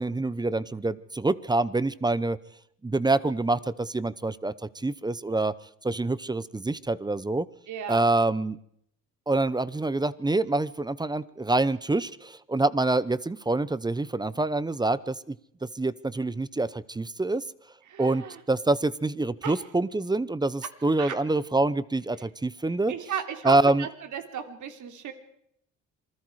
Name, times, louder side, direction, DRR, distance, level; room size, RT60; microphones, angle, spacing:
voice 1, 0.0-2.4 2.8-5.5 5.8-7.5 7.9-8.6 9.3-15.4 15.7-17.4 18.0-22.9 23.4-23.9, right 2 dB, 10° right, 17 dB, 0.8 m, -26 dB
voice 2, 7.7-8.1 17.9-18.4 19.4-19.5 21.0-21.2 22.9-25.1, right 8 dB, 60° right, 6 dB, 3.4 m, -34 dB
27.0 x 20.5 x 4.9 m, 0.71 s
cardioid pair, 105°, 33 cm